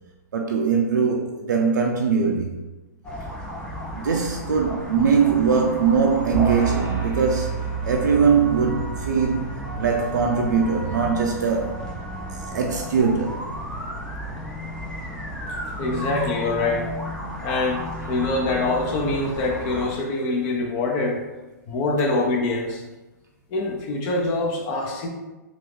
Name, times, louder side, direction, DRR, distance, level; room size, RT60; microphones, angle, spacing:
voice 1, 0.3-2.6 3.9-11.8 12.3-13.5, right 5 dB, 75° right, 0.4 m, -22 dB
sound 1, 3.0-19.9, equal, 10° left, 0.7 m, -34 dB
sound 2, 6.3-11.8, right 5 dB, 20° right, 0.9 m, -31 dB
voice 2, 15.8-16.9 17.4-21.2 21.7-22.8 23.5-25.1, left 2 dB, 40° left, 0.7 m, -24 dB
2.7 x 2.5 x 3.6 m
hypercardioid pair, 110°, 10 cm